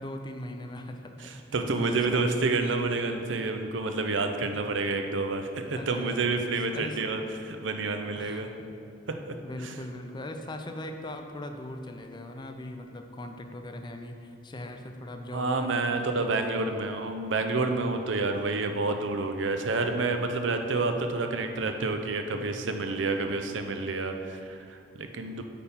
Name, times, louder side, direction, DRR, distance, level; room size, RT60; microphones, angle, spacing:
voice 1, 0.0-1.1 1.7-2.3 5.7-6.4 6.7-7.0 8.2-8.7 9.4-16.6, left 1 dB, 25° left, 5 dB, 0.5 m, -40 dB
voice 2, 1.2-7.2 7.5-8.5 9.1-9.2 9.6-9.7 15.3-25.4, right 3 dB, 80° right, 6 dB, 0.6 m, -29 dB
8.4 x 3.6 x 5.6 m, 2.4 s
head